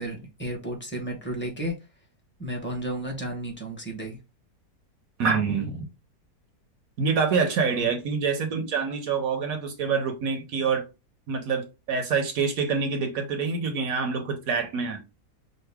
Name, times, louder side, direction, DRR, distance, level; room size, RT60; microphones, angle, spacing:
voice 1, 0.0-1.7 2.4-4.2 7.7-7.9, right 1 dB, 10° left, 0.8 m, -33 dB
voice 2, 5.2-5.9 7.0-10.8 11.3-15.0, right 5 dB, 65° right, 1.0 m, -26 dB
5.4 x 2.0 x 3.3 m
omnidirectional pair, 1.8 m